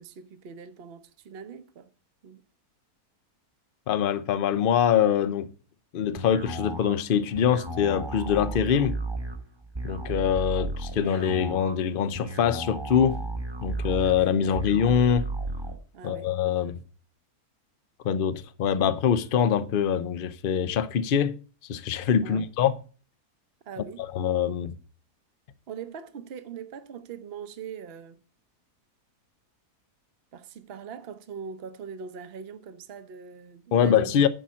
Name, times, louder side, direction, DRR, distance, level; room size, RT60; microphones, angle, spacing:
voice 1, 0.0-1.9 2.2-2.4 14.4-14.7 15.9-16.3 22.2-22.5 23.7-24.1 25.7-28.2 30.3-34.1, right 6 dB, 45° right, 0.9 m, -41 dB
voice 2, 3.9-5.5 5.9-9.0 9.8-13.2 13.6-15.3 16.0-16.8 18.0-21.4 21.7-22.7 24.1-24.7 33.7-34.3, left 8 dB, 55° left, 0.6 m, -24 dB
sound 1, 6.2-15.8, right 2 dB, 20° right, 1.0 m, -34 dB
10.5 x 4.3 x 7.4 m
omnidirectional pair, 1.6 m